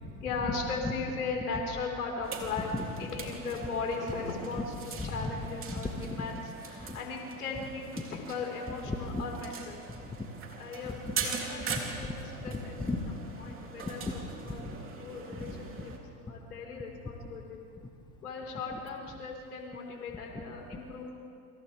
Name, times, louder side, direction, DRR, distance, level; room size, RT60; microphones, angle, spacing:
voice 1, 0.2-2.7 3.0-4.7 5.0-6.4 6.7-9.8 10.6-10.9 11.2-12.7 13.4-14.6 15.0-15.9 16.3-17.6 18.2-21.1, left 4 dB, 80° left, 0 dB, 5.1 m, -37 dB
sound 1, 2.2-16.0, right 5 dB, 30° right, 3.4 m, -42 dB
voice 2, 5.0-5.3 5.7-6.5 6.9-7.0 8.0-8.1 8.9-9.2 9.9-10.3 10.9-11.3 11.6-13.5 13.8-14.1 14.5-14.8 15.3-15.9 18.7-18.8 20.3-20.4, left 2 dB, 10° left, 3 dB, 1.9 m, -37 dB
28.5 x 26.0 x 3.6 m, 2.5 s
hypercardioid pair, 95°, 45 cm